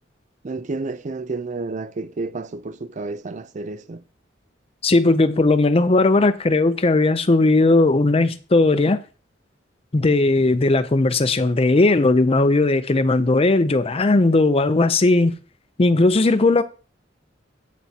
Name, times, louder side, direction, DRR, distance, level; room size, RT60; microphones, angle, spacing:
voice 1, 0.4-4.0, right 3 dB, 40° right, 0.5 m, -30 dB
voice 2, 4.8-9.0 9.9-15.3 15.8-16.6, left 2 dB, 30° left, 0.5 m, -17 dB
8.4 x 7.2 x 2.9 m
head